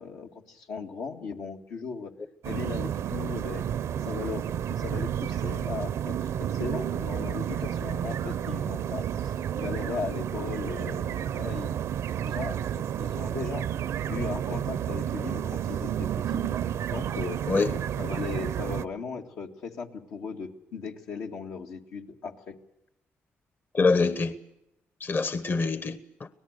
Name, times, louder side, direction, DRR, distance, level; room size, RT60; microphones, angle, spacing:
voice 1, 0.0-2.1 2.4-3.7 3.9-11.7 12.2-13.7 14.1-16.5 16.9-17.4 18.0-22.6, left 5 dB, 80° left, 1 dB, 2.1 m, -37 dB
sound 1, 2.4-18.9, right 9 dB, 80° right, 0.7 m, -31 dB
voice 2, 23.7-24.3 25.0-26.3, left 4 dB, 40° left, 13 dB, 1.1 m, -25 dB
25.5 x 18.5 x 6.6 m, 0.87 s
cardioid pair, 65°, 5 cm